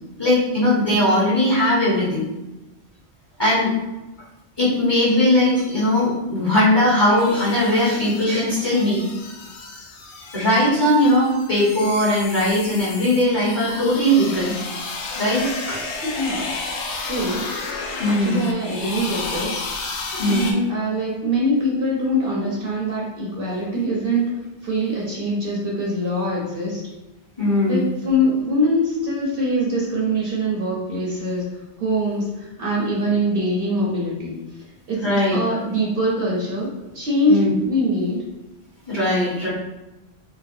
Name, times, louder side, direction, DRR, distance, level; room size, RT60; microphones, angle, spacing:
voice 1, 0.2-2.2 3.4-3.7 4.6-9.0 10.3-14.5 15.1-15.8 18.0-18.4 20.1-20.5 27.4-27.9 35.0-35.4 37.3-37.5 38.9-39.5, left 1 dB, 25° left, -10 dB, 1.3 m, -19 dB
sound 1, 7.2-20.5, left 3 dB, 80° left, 0.9 m, -32 dB
voice 2, 16.0-16.5 17.0-17.4 18.1-20.0 20.3-24.2 24.6-26.8 27.7-31.4 31.8-34.4 34.9-36.7 36.9-38.2, equal, 55° right, -4 dB, 0.9 m, -23 dB
4.0 x 2.2 x 2.6 m, 1.0 s
omnidirectional pair, 1.2 m